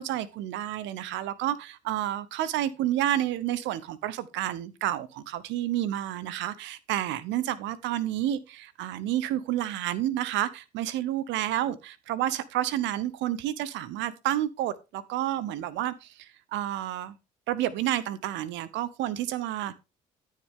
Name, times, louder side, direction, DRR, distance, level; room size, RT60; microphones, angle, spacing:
voice 1, 0.0-17.1 17.5-19.7, right 12 dB, 70° right, 0.8 m, -30 dB
13.0 x 6.5 x 3.5 m
hypercardioid pair, 60°, 20 cm